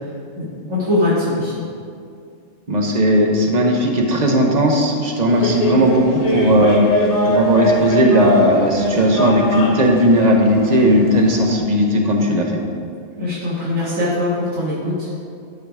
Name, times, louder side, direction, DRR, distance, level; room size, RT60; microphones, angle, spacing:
voice 1, 0.4-1.6 13.2-15.1, left 2 dB, 90° right, -10 dB, 2.4 m, -21 dB
voice 2, 2.7-6.8 7.3-12.5, equal, 35° right, 1 dB, 1.1 m, -16 dB
sound 1, 5.3-11.6, left 2 dB, 35° left, 0.8 m, -21 dB
11.5 x 4.9 x 4.8 m, 2.3 s
omnidirectional pair, 1.3 m